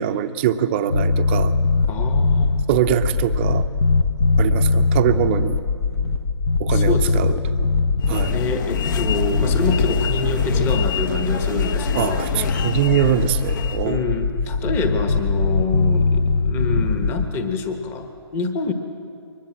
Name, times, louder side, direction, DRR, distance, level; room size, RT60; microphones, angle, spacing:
voice 1, 0.0-1.6 2.7-3.7 4.4-5.6 6.6-7.3 8.1-8.4 11.9-14.1, right 10 dB, 25° right, 9 dB, 0.7 m, -22 dB
sound 1, 0.9-17.3, left 4 dB, 65° left, 1.1 m, -21 dB
voice 2, 1.9-2.7 6.7-7.2 8.2-12.6 13.8-18.7, left 4 dB, 15° left, 7 dB, 1.3 m, -26 dB
sound 2, 8.0-13.9, left 6 dB, 40° left, 0.9 m, -27 dB
23.0 x 20.0 x 7.7 m, 2.4 s
hypercardioid pair, 155°, 15 cm